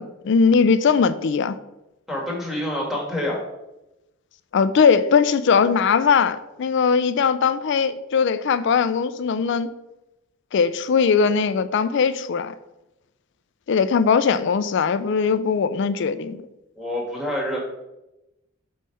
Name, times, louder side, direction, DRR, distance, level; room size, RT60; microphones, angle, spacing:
voice 1, 0.0-1.6 4.5-9.7 10.5-12.5 13.7-16.4, left 5 dB, 60° left, 13 dB, 0.4 m, -20 dB
voice 2, 2.1-3.4 16.8-17.6, left 1 dB, ahead, -3 dB, 1.5 m, -27 dB
5.4 x 3.2 x 5.5 m, 0.93 s
head